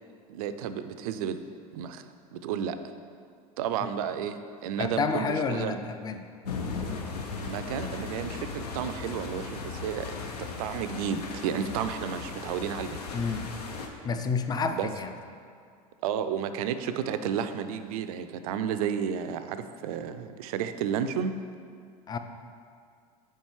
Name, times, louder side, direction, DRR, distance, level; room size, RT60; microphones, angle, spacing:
voice 1, 0.3-1.4 1.7-2.8 3.6-5.8 7.4-13.0 14.7-14.9 16.0-21.3, right 8 dB, 70° right, 10 dB, 0.4 m, -32 dB
voice 2, 4.8-6.3 13.1-13.6 14.0-15.1 22.1-22.2, left 5 dB, 20° left, 7 dB, 0.4 m, -29 dB
sound 1, 6.4-13.9, left 4 dB, 85° left, 0.6 m, -37 dB
5.2 x 4.5 x 4.6 m, 2.2 s
hypercardioid pair, 80°, 19 cm